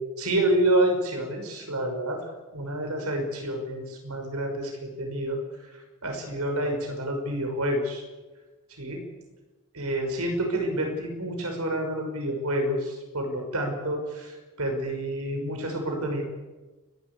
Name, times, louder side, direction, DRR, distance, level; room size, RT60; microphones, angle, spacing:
voice 1, 0.2-2.2 2.5-5.4 6.0-8.0 8.8-9.0 9.7-16.2, right 1 dB, 80° right, 3 dB, 5.8 m, -28 dB
30.0 x 12.5 x 8.4 m, 1.2 s
head